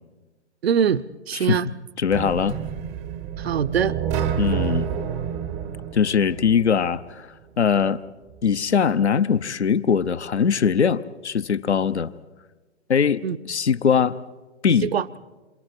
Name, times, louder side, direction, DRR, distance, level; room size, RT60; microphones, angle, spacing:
voice 1, 0.6-1.7 3.4-4.0 13.2-13.4 14.8-15.1, right 8 dB, 60° right, 15 dB, 0.7 m, -23 dB
voice 2, 1.3-2.6 4.4-4.9 5.9-8.0 8.4-12.1 12.9-14.2 14.6-14.9, left 6 dB, 70° left, 14 dB, 0.9 m, -21 dB
sound 1, 2.1-7.0, right 9 dB, 15° right, 0.6 m, -29 dB
28.0 x 27.5 x 4.5 m, 1.2 s
figure-of-eight pair, 130°, 35 cm